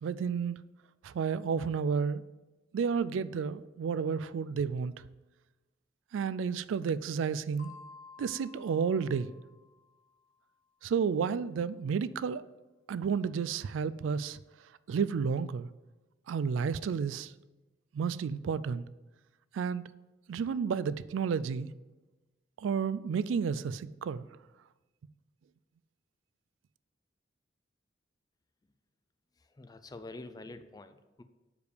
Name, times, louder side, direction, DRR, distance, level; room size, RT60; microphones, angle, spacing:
voice 1, 0.0-0.6 1.0-2.2 2.7-4.9 6.1-7.7 8.2-9.3 10.8-12.4 12.9-14.4 14.9-15.7 16.3-17.3 17.9-18.8 19.5-19.8 20.3-21.7 22.6-24.2, right 6 dB, 85° right, 15 dB, 0.3 m, -31 dB
sound 1, 7.6-10.1, left 5 dB, 90° left, 1.0 m, -53 dB
voice 2, 29.6-31.2, left 2 dB, 20° left, 11 dB, 0.4 m, -46 dB
6.6 x 4.9 x 5.1 m, 1.1 s
head